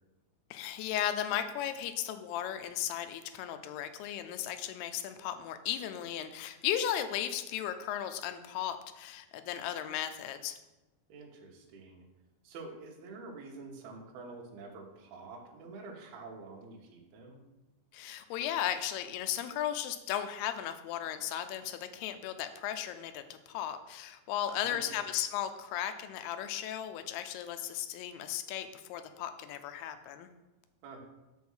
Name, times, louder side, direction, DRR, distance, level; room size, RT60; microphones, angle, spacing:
voice 1, 0.5-10.6 17.9-30.3, left 10 dB, 85° left, 9 dB, 2.6 m, -36 dB
voice 2, 11.1-12.0 12.4-17.4 24.5-24.9 30.8-31.0, right 3 dB, 80° right, -1 dB, 3.1 m, -47 dB
6.7 x 6.2 x 5.6 m, 1.0 s
omnidirectional pair, 4.5 m